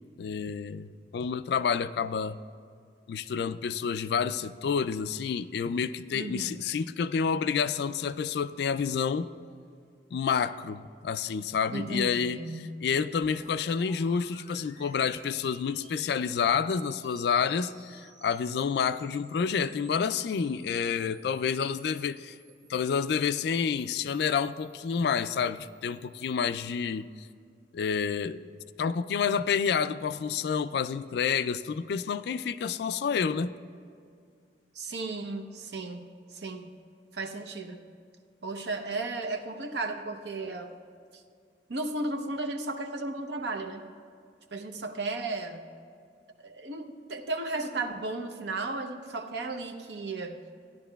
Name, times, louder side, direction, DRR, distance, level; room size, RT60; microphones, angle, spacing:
voice 1, 0.2-2.4 3.1-9.3 10.1-12.4 12.8-22.4 22.7-27.0 27.7-28.4 28.8-33.5, left 6 dB, 60° left, 13 dB, 0.3 m, -29 dB
voice 2, 6.1-6.6 11.7-12.9 34.7-36.7 37.1-37.8 38.4-40.7 41.1-41.2 41.7-43.9 44.5-45.7 46.4-50.4, right 2 dB, 65° right, 6 dB, 0.7 m, -35 dB
sound 1, 13.2-27.1, right 2 dB, 40° right, 1.5 m, -56 dB
15.5 x 10.5 x 2.3 m, 2.3 s
head